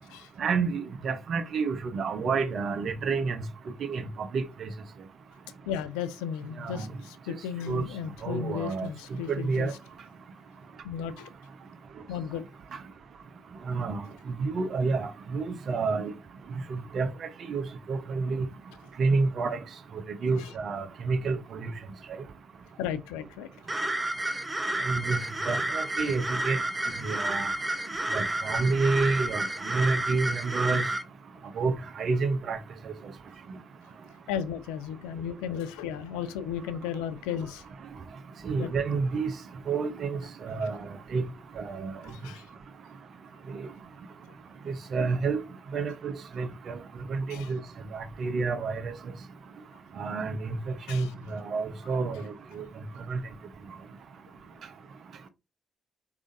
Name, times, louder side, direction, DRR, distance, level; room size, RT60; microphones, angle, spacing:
voice 1, 0.4-3.4 3.8-4.5 6.6-6.9 7.7-7.8 8.2-8.9 9.3-9.7 13.7-14.0 14.4-16.1 16.7-17.6 17.9-18.5 19.0-19.6 20.2-21.7 24.9-25.2 25.5-26.6 27.0-27.5 28.1-29.4 29.7-30.8 31.6-32.6 38.4-39.3 39.7-40.8 41.1-41.2 41.6-41.9 43.5-43.7 44.7-45.4 45.7-46.8 47.1-47.6 47.9-48.9 50.0-52.6 53.1-53.2, right 4 dB, 60° right, 0.9 m, -29 dB
voice 2, 5.7-9.7 10.8-11.3 12.1-12.4 20.3-20.5 22.8-23.5 28.0-28.1 34.3-37.6 38.6-38.7 42.0-42.5 47.3-47.5 50.9-51.1, left 8 dB, 85° left, 0.4 m, -35 dB
sound 1, 23.7-31.0, right 1 dB, 25° right, 1.1 m, -30 dB
4.9 x 3.6 x 2.6 m
hypercardioid pair, 45°, 0 cm